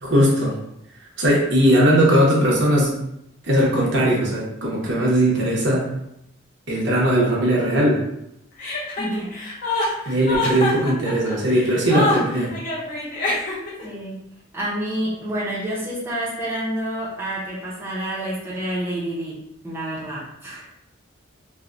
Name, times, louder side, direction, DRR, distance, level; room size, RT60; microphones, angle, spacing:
voice 1, 0.0-0.6 1.2-3.0 3.4-5.9 6.7-8.0 10.1-12.5, right 1 dB, 60° right, -4 dB, 0.8 m, -19 dB
Chuckle chortle, 8.6-13.8, left 2 dB, 45° left, 0.7 m, -25 dB
voice 2, 8.6-9.4 9.7-9.9 13.8-14.2 14.5-20.7, right 1 dB, 10° right, -8 dB, 0.6 m, -29 dB
3.3 x 2.1 x 2.5 m, 0.80 s
head